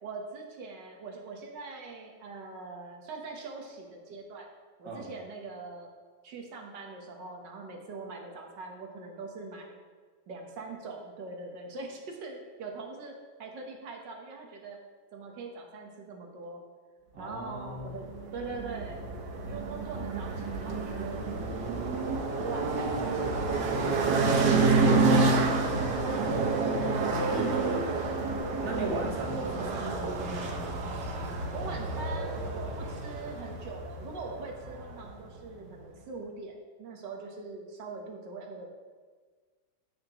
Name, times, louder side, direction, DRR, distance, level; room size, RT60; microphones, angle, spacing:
voice 1, 0.0-4.5 4.8-5.9 6.2-9.8 10.3-14.8 15.1-16.6 17.2-19.1 19.5-21.3 21.9-25.6 28.8-29.0 31.5-38.7, right 3 dB, 90° right, 1 dB, 1.8 m, -42 dB
voice 2, 17.1-17.9 26.1-26.8 27.2-27.8 28.6-30.1, right 2 dB, 40° right, -2 dB, 1.8 m, -36 dB
sound 1, 17.8-35.2, right 3 dB, 75° right, 1.6 m, -29 dB
17.0 x 5.8 x 3.0 m, 1.5 s
omnidirectional pair, 1.8 m